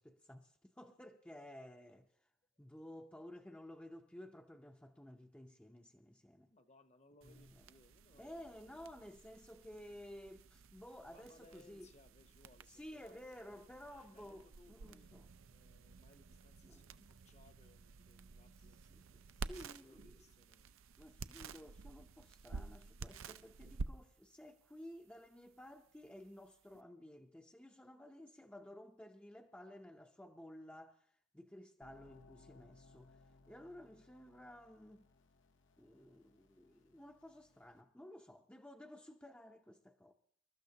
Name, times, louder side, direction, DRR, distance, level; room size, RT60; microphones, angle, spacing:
voice 1, 0.0-2.1 2.6-6.5 7.2-7.5 8.2-11.9 12.7-15.3 16.6-17.1 18.9-19.0 19.4-20.1 21.0-31.0 31.3-33.2 33.5-35.1 35.8-40.1, left 1 dB, 5° left, 0.6 m, -54 dB
voice 2, 6.5-9.0 11.0-19.0 19.5-20.7, left 2 dB, 35° left, 0.8 m, -67 dB
sound 1, 7.2-26.8, right 4 dB, 85° right, 0.5 m, -52 dB
sound 2, 31.8-37.8, left 3 dB, 60° left, 0.8 m, -66 dB
26.5 x 12.5 x 2.8 m
head